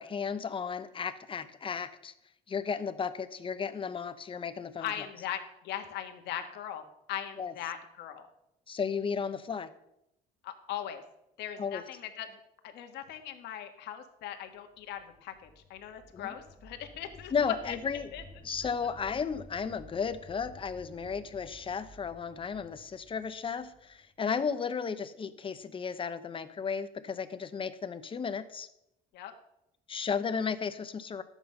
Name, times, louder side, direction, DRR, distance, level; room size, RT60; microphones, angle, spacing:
voice 1, 0.0-2.1 2.5-5.0 7.4-7.5 8.7-9.7 11.6-11.8 16.1-16.3 17.3-18.1 18.4-28.7 29.9-31.2, left 6 dB, 30° left, 11 dB, 0.9 m, -34 dB
voice 2, 4.8-6.8 7.1-8.3 10.4-11.0 11.4-12.3 12.6-17.8 18.1-18.2 29.1-29.3, left 10 dB, 80° left, 6 dB, 1.5 m, -39 dB
sound 1, 14.7-24.5, equal, 5° left, 1.4 m, -53 dB
11.5 x 8.1 x 5.5 m, 0.85 s
cardioid pair, 110°, 17 cm